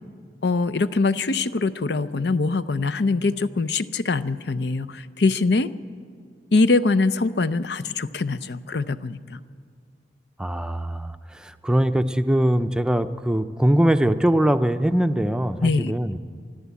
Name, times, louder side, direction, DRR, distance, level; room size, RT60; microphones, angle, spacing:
voice 1, 0.4-5.7 6.5-9.4 15.6-15.9, left 3 dB, 70° left, 14 dB, 0.6 m, -23 dB
voice 2, 10.4-16.2, right 1 dB, 5° right, 9 dB, 0.5 m, -22 dB
25.0 x 13.0 x 8.3 m, 2.2 s
head